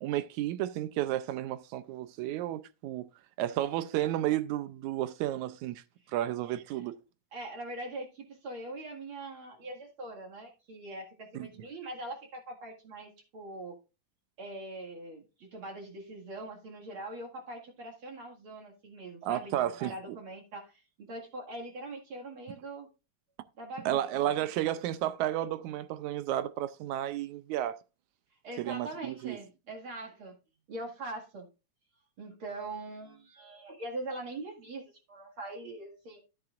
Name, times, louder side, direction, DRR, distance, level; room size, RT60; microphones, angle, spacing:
voice 1, 0.0-3.1 3.4-5.8 6.1-7.0 11.4-11.5 19.2-20.2 23.9-27.8 28.6-29.4, right 13 dB, 80° right, 1.9 m, -32 dB
voice 2, 7.3-13.8 14.4-22.9 23.6-24.3 28.4-30.4 30.7-31.5 32.2-36.2, right 2 dB, 45° right, 2.5 m, -42 dB
13.0 x 8.7 x 2.4 m
omnidirectional pair, 3.5 m